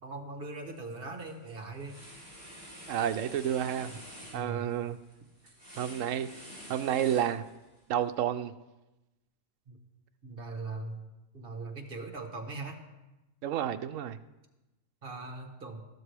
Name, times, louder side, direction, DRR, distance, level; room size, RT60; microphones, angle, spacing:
voice 1, 0.0-2.0 4.3-4.7 9.7-9.8 10.2-11.0 11.3-12.8 15.0-15.8, right 3 dB, 45° right, 4 dB, 1.4 m, -40 dB
sound 1, 0.6-0.9 1.3-7.8, equal, 35° left, 5.1 m, -49 dB
voice 2, 2.9-3.9 4.3-5.0 5.8-6.3 6.7-7.4 7.9-8.5 13.4-14.2, right 10 dB, 70° right, 10 dB, 0.9 m, -30 dB
13.5 x 12.5 x 3.4 m, 1.0 s
omnidirectional pair, 1.4 m